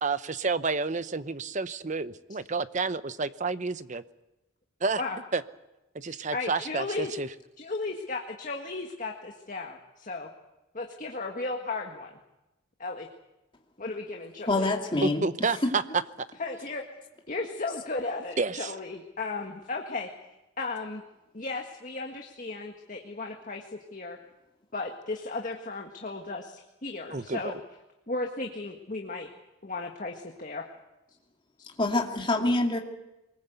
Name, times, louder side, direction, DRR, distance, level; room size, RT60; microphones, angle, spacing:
voice 1, 0.0-4.0 4.8-5.0 5.3-5.4 5.9-7.3 15.0-15.8 18.4-18.7 27.1-27.4, right 4 dB, 35° right, 14 dB, 0.8 m, -30 dB
voice 2, 6.3-7.1 7.6-10.3 10.7-12.2 12.8-13.1 13.8-14.7 16.4-16.8 17.3-20.1 20.6-21.0 21.3-24.2 24.7-27.6 28.1-29.3 29.6-30.7, left 3 dB, 40° left, 2 dB, 1.8 m, -35 dB
voice 3, 14.5-15.2 15.6-15.7 31.8-32.8, left 2 dB, 25° left, 2 dB, 2.5 m, -25 dB
24.0 x 20.5 x 8.1 m, 0.97 s
head